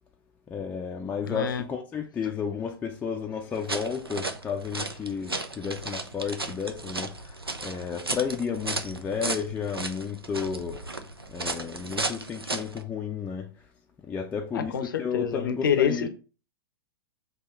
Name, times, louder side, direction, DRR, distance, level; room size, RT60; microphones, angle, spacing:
voice 1, 0.5-10.8 11.3-13.5 14.1-16.1, left 6 dB, 15° left, 0.4 m, -32 dB
voice 2, 1.2-1.6 14.5-16.1, left 7 dB, 60° left, 0.6 m, -27 dB
sound 1, 3.5-12.8, right 2 dB, 85° right, 0.5 m, -35 dB
3.6 x 2.8 x 4.3 m
figure-of-eight pair, 100°, 12 cm